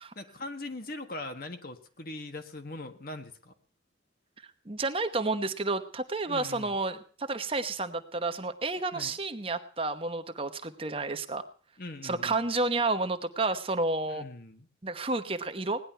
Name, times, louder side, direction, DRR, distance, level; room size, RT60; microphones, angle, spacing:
voice 1, 0.1-3.5 6.2-6.7 8.9-9.2 11.8-12.4 14.1-14.7, left 2 dB, 50° left, 8 dB, 1.5 m, -41 dB
voice 2, 4.7-11.4 12.0-14.2 14.8-15.8, right 3 dB, 30° right, 9 dB, 1.0 m, -30 dB
18.0 x 11.0 x 5.7 m, 0.43 s
head